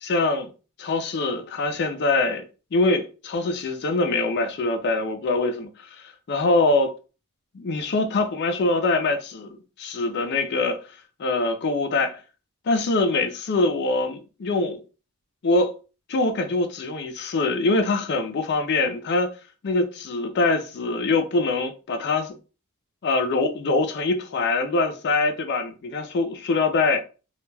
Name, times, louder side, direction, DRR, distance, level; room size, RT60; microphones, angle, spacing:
voice 1, 0.0-0.5 0.8-2.4 2.7-6.9 7.5-10.8 11.2-12.2 12.7-14.8 15.4-15.7 16.1-19.3 19.6-22.3 23.0-27.0, left 3 dB, 50° left, 0.4 m, -23 dB
2.2 x 2.2 x 3.2 m
head